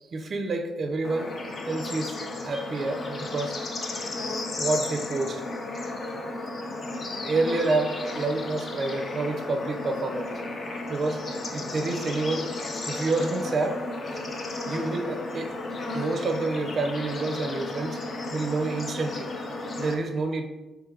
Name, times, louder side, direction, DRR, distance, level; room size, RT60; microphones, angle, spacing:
voice 1, 0.1-1.4 1.6-2.2 2.4-3.6 4.6-5.4 7.2-10.3 10.9-13.8 14.1-14.2 14.7-15.5 15.9-18.0 18.3-19.3 19.8-20.5, right 3 dB, 45° right, 6 dB, 0.4 m, -28 dB
Bird / Insect / Frog, 1.0-19.9, left 2 dB, 45° left, 0.6 m, -34 dB
3.2 x 2.9 x 3.6 m, 1.1 s
cardioid pair, 90°, 0 cm